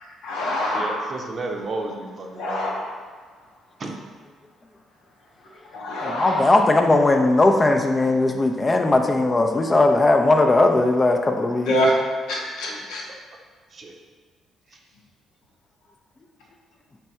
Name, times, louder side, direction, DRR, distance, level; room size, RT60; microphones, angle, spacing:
voice 1, 0.2-1.0 2.4-2.9 5.7-6.5 11.7-12.0 12.3-13.0, equal, 70° left, -3 dB, 0.9 m, -25 dB
voice 2, 0.7-2.7 3.8-3.9 12.7-12.8 13.7-13.9, right 2 dB, 45° right, 1 dB, 0.6 m, -32 dB
voice 3, 6.0-11.7, left 2 dB, 25° left, 4 dB, 0.5 m, -18 dB
3.4 x 3.3 x 4.4 m, 1.5 s
hypercardioid pair, 45°, 0 cm